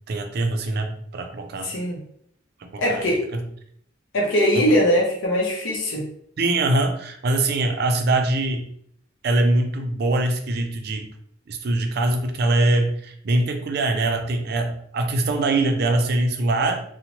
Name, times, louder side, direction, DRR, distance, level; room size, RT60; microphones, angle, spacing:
voice 1, 0.1-1.7 2.6-3.4 4.6-4.7 6.4-8.7 9.2-11.1 11.5-16.8, right 2 dB, 55° right, 5 dB, 0.4 m, -23 dB
voice 2, 1.6-2.0 2.8-3.2 4.1-6.0, equal, 70° left, -2 dB, 0.6 m, -21 dB
2.9 x 2.0 x 2.8 m, 0.68 s
head